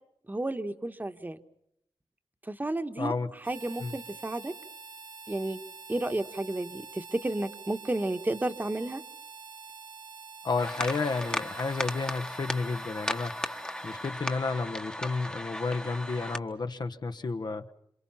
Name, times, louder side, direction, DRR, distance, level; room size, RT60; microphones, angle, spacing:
voice 1, 0.3-1.4 2.4-3.1 3.5-4.5 5.3-5.6 5.9-9.0, right 2 dB, 20° right, 8 dB, 1.4 m, -32 dB
voice 2, 3.0-3.3 3.8-3.9 10.4-13.6 13.8-17.6, left 4 dB, 50° left, 7 dB, 1.3 m, -31 dB
Harmonica, 3.4-14.5, right 5 dB, 65° right, 2.0 m, -47 dB
sound 1, 10.6-16.4, left 1 dB, 10° left, 1.4 m, -36 dB
28.0 x 26.5 x 5.8 m, 0.77 s
wide cardioid pair, 100°, 9 cm